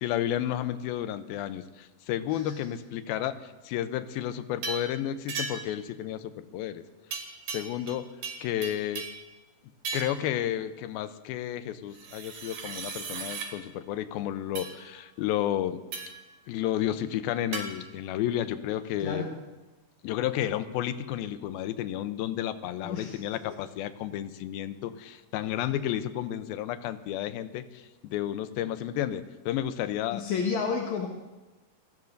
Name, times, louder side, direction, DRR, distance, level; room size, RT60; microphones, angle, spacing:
voice 1, 0.0-6.8 7.5-8.1 8.4-9.1 9.9-15.8 16.5-19.2 20.0-30.2, left 11 dB, 85° left, 11 dB, 2.5 m, -32 dB
sound 1, 4.6-4.9 5.3-5.8 7.1-8.0 8.2-9.2 9.8-10.2 11.9-13.5 14.6-14.7 15.9-16.2 17.5-17.7, right 4 dB, 80° right, 3.9 m, -36 dB
voice 2, 19.0-19.3 22.8-23.4 30.1-31.1, left 5 dB, 60° left, 0 dB, 2.4 m, -31 dB
28.0 x 18.0 x 2.7 m, 1.1 s
omnidirectional pair, 4.3 m